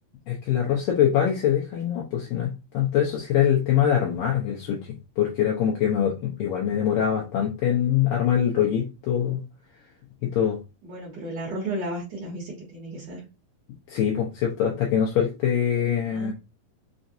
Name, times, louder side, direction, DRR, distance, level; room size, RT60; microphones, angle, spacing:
voice 1, 0.3-4.8 5.2-9.4 10.2-10.6 13.9-16.3, left 9 dB, 75° left, -2 dB, 2.3 m, -23 dB
voice 2, 10.8-13.2 16.1-16.3, right 1 dB, 60° right, -6 dB, 2.2 m, -33 dB
5.9 x 2.5 x 2.7 m, 0.28 s
omnidirectional pair, 4.3 m